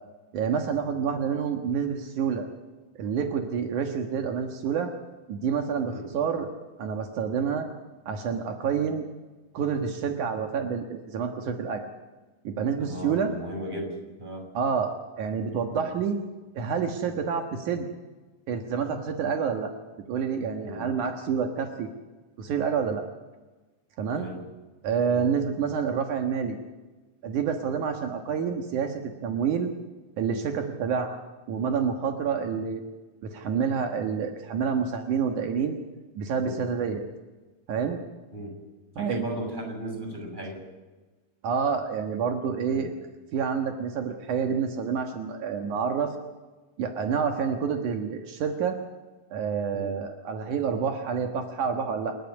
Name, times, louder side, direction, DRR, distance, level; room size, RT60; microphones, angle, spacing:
voice 1, 0.3-2.5 3.0-4.9 5.3-6.5 6.8-7.7 8.1-9.0 9.5-11.9 12.4-13.3 14.5-16.2 16.6-17.9 18.5-19.7 20.1-21.9 22.4-23.0 24.0-24.3 24.8-26.6 27.2-29.7 30.2-31.2 31.5-32.8 33.2-35.8 36.2-37.0 37.7-38.0 39.0-39.2 41.4-42.9 43.3-46.2 46.8-48.8 49.3-52.2, right 6 dB, 75° right, 4 dB, 2.9 m, -28 dB
voice 2, 12.8-14.5 15.7-15.9 20.6-20.9 24.1-24.4 25.1-25.3 36.4-36.6 38.3-38.5 39.0-40.6 42.7-42.9 49.7-49.9, right 1 dB, 15° right, 1 dB, 6.8 m, -36 dB
28.5 x 12.5 x 9.5 m, 1.2 s
omnidirectional pair, 3.6 m